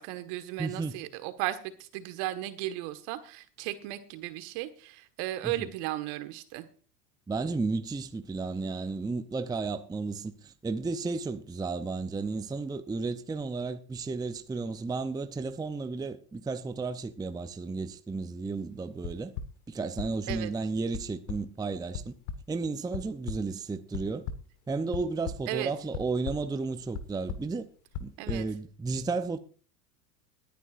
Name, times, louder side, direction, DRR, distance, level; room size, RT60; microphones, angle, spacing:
voice 1, 0.0-6.7 20.3-20.5 25.5-25.7 28.2-28.5, right 15 dB, 65° right, 1.7 m, -35 dB
voice 2, 0.6-1.0 5.4-5.7 7.3-19.3 19.7-22.1 22.5-24.2 24.7-27.7 28.0-29.4, right 4 dB, 10° right, 0.6 m, -33 dB
sound 1, 19.0-19.5 20.0-20.4 20.9-21.0 21.3-21.4 21.9-22.0 22.3-22.4 22.9-23.4 23.9-24.4 24.9-25.4 25.9-26.3 26.9-27.0 27.3-27.5 27.9-28.4, left 7 dB, 65° left, 1.6 m, -35 dB
21.5 x 10.0 x 2.6 m
hypercardioid pair, 95°, 49 cm